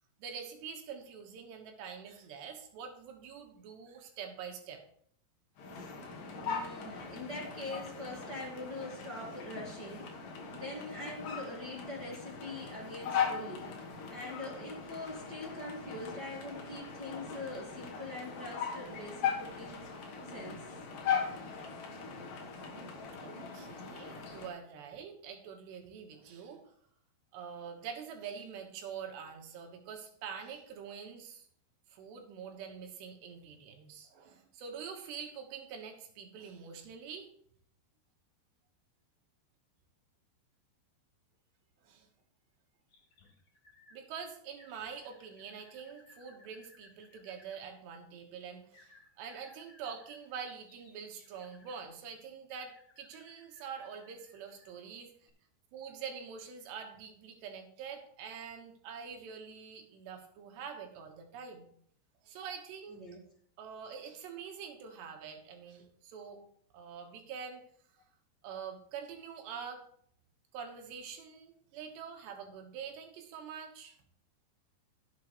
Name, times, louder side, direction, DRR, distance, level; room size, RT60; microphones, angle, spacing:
voice 1, 0.2-4.8 23.2-26.7 27.3-31.5 31.9-37.3 41.8-42.1 43.9-55.1 55.7-61.7 62.2-63.0 63.6-66.4 66.7-67.6 68.4-69.9 70.5-74.0, right 6 dB, 75° right, 3 dB, 3.5 m, -45 dB
sound 1, 5.6-24.5, left 6 dB, 60° left, 2.5 m, -39 dB
voice 2, 6.4-10.2 10.4-13.7 14.1-19.8 20.2-20.8 23.8-23.9 62.9-63.2, left 1 dB, 50° right, -4 dB, 1.2 m, -43 dB
sound 2, 42.9-44.0 44.6-47.6 48.7-51.8 52.5-54.8 55.2-55.3, left 2 dB, 40° left, 4.1 m, -62 dB
16.0 x 7.7 x 3.2 m, 0.63 s
omnidirectional pair, 5.3 m